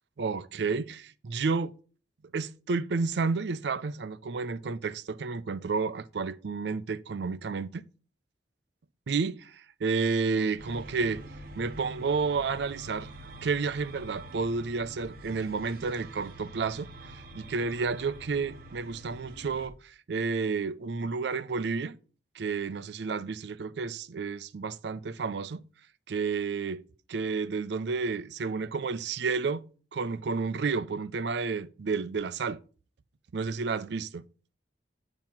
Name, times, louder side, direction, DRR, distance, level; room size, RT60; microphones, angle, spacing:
voice 1, 0.2-1.8 2.3-7.8 9.1-11.2 11.5-13.1 13.4-22.0 22.3-25.6 26.1-26.8 27.1-32.6 33.3-34.2, right 4 dB, 70° right, 0.4 m, -31 dB
sound 1, 10.6-19.7, right 1 dB, 50° right, 0.8 m, -46 dB
8.7 x 2.9 x 5.8 m
head